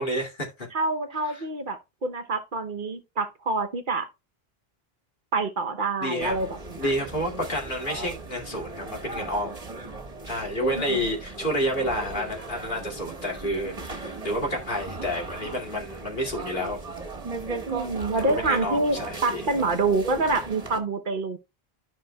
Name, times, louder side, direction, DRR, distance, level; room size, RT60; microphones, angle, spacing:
voice 1, 0.0-0.7 1.2-1.4 6.0-6.4 6.8-9.6 10.3-16.8 18.2-19.4, equal, 55° left, 2.6 m, -29 dB
voice 2, 0.7-4.1 5.3-6.9 10.6-11.1 17.7-21.4, right 3 dB, 55° right, 0.9 m, -27 dB
sound 1, 6.2-20.8, right 3 dB, 35° right, 1.5 m, -37 dB
13.0 x 5.6 x 2.2 m
omnidirectional pair, 1.0 m